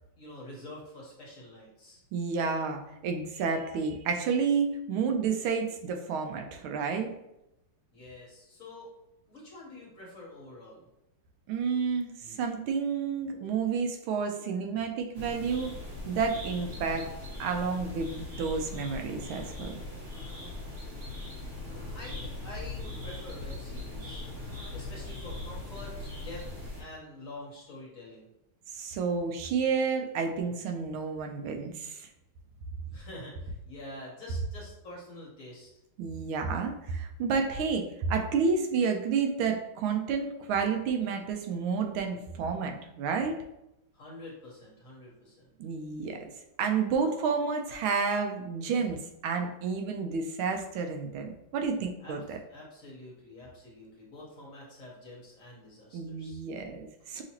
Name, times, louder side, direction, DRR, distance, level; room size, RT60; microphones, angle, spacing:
voice 1, 0.2-2.0 7.9-8.9 9.3-10.8 20.7-21.1 21.7-24.2 24.7-26.5 26.8-28.3 32.9-35.7 43.9-45.5 52.0-56.4 57.0-57.1, left 1 dB, 45° left, -4 dB, 1.4 m, -47 dB
voice 2, 2.1-7.1 11.5-15.8 16.1-17.1 17.4-19.8 28.7-32.1 36.0-43.4 45.6-46.3 46.6-52.4 55.9-57.2, right 5 dB, 85° right, 4 dB, 1.4 m, -30 dB
sound 1, 15.1-26.8, left 2 dB, 40° right, 1.0 m, -40 dB
5.6 x 2.9 x 2.8 m, 0.89 s
omnidirectional pair, 2.2 m